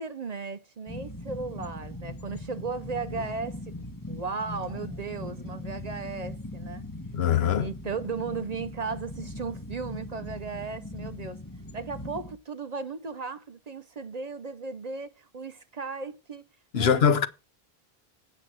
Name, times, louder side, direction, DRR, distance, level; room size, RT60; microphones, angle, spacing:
voice 1, 0.0-3.7 4.1-6.8 7.5-11.4 11.7-16.4 16.7-17.3, right 4 dB, 45° right, 0.7 m, -36 dB
sound 1, 0.9-12.4, left 1 dB, 20° left, 1.5 m, -40 dB
voice 2, 7.1-7.7 16.7-17.3, left 7 dB, 75° left, 1.1 m, -22 dB
8.9 x 6.2 x 6.2 m
omnidirectional pair, 1.0 m